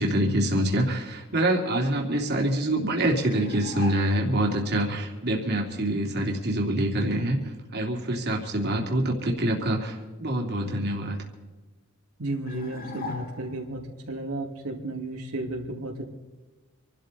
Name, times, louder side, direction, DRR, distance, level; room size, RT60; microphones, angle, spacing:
voice 1, 0.0-11.2, right 1 dB, 50° right, 0 dB, 2.7 m, -26 dB
sound 1, 3.2-4.4 12.5-13.8, left 3 dB, 45° left, 1.9 m, -39 dB
voice 2, 12.2-16.0, right 1 dB, 75° right, 0 dB, 2.5 m, -33 dB
26.5 x 12.5 x 4.2 m, 1.2 s
head